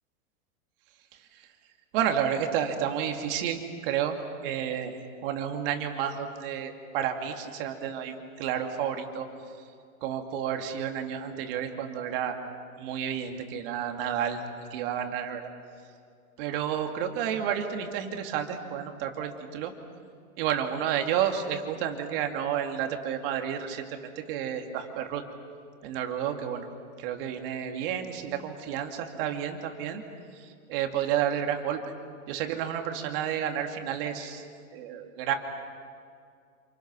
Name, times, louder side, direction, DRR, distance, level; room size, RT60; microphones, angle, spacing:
voice 1, 1.9-4.2 4.4-4.9 5.2-9.3 10.0-12.4 12.8-14.4 14.7-15.5 16.4-19.7 20.4-25.2 25.8-26.7 27.0-30.0 30.4-31.8 32.3-34.4 34.7-35.3, right 9 dB, 40° right, 4 dB, 2.4 m, -31 dB
28.0 x 28.0 x 6.2 m, 2.3 s
supercardioid pair, 160°, 43 cm